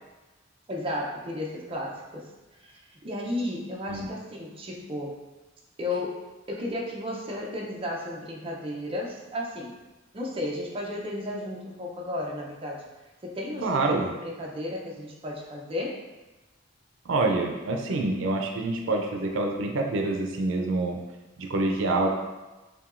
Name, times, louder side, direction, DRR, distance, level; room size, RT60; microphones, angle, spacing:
voice 1, 0.7-2.3 2.6-5.2 5.8-9.8 10.1-12.9 13.2-16.0, left 1 dB, 30° right, -2 dB, 0.6 m, -34 dB
voice 2, 13.6-14.1 17.1-21.0 21.4-22.1, right 2 dB, 85° right, 2 dB, 0.4 m, -26 dB
5.6 x 2.2 x 2.5 m, 1.1 s
head